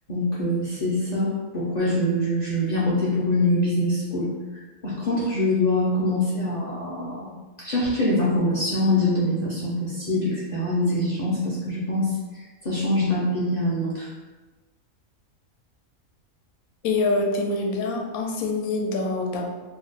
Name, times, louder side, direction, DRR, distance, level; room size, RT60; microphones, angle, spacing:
voice 1, 0.1-4.3 4.8-7.3 7.6-14.1, left 1 dB, 60° left, -8 dB, 0.4 m, -24 dB
voice 2, 16.8-19.4, left 3 dB, 90° left, 1 dB, 1.1 m, -25 dB
2.8 x 2.1 x 3.8 m, 1.2 s
omnidirectional pair, 1.5 m